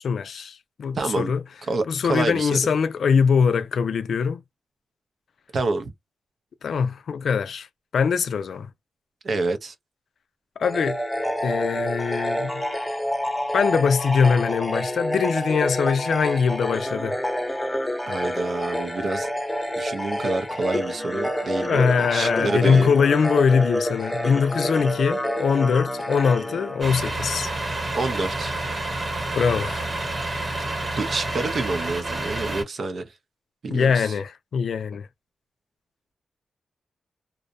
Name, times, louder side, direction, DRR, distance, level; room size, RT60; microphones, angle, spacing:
voice 1, 0.0-1.4 1.9-4.4 6.6-7.7 7.9-8.7 10.6-11.0 11.4-12.6 13.5-17.2 21.6-27.5 29.3-29.9 33.7-35.1, left 6 dB, 80° left, 0.4 m, -22 dB
voice 2, 1.0-1.3 1.7-2.7 5.5-5.9 9.2-9.7 18.1-19.3 19.8-22.9 27.9-28.6 30.7-33.0 33.6-34.1, right 3 dB, 60° right, 0.5 m, -28 dB
sound 1, 10.6-27.4, equal, 10° left, 0.7 m, -28 dB
Truck, 26.8-32.6, right 2 dB, 45° right, 0.9 m, -29 dB
2.5 x 2.0 x 2.5 m
wide cardioid pair, 110°, 0 cm